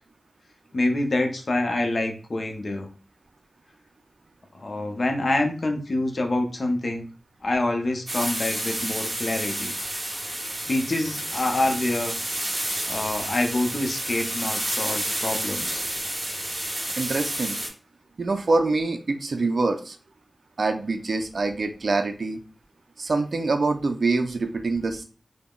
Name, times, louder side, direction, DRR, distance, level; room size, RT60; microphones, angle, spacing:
voice 1, 0.7-2.9 4.5-7.1 7.4-9.7 10.7-12.1 12.9-15.8, left 2 dB, 60° left, 4 dB, 0.6 m, -26 dB
sound 1, 8.1-17.7, right 1 dB, 30° right, 0.9 m, -30 dB
voice 2, 17.0-17.6 18.2-20.0 20.6-22.4 23.0-25.0, right 3 dB, 75° right, 6 dB, 0.3 m, -25 dB
2.3 x 2.0 x 3.5 m, 0.37 s
wide cardioid pair, 85°, 0 cm